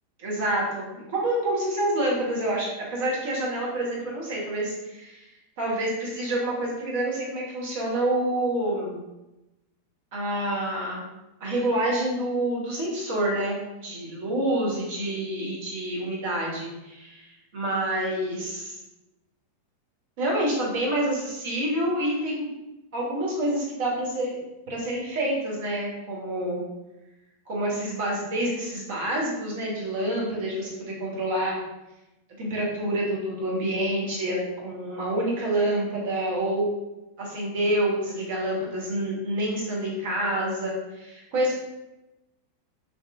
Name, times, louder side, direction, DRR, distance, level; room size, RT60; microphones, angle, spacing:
voice 1, 0.2-5.2 5.6-9.0 10.1-11.0 11.4-18.8 20.2-22.5 22.9-24.4 24.7-26.6 27.5-31.6 32.4-36.7 37.2-41.5, right 1 dB, 50° right, -3 dB, 1.0 m, -27 dB
2.8 x 2.7 x 2.3 m, 0.97 s
figure-of-eight pair, 90°, 0 cm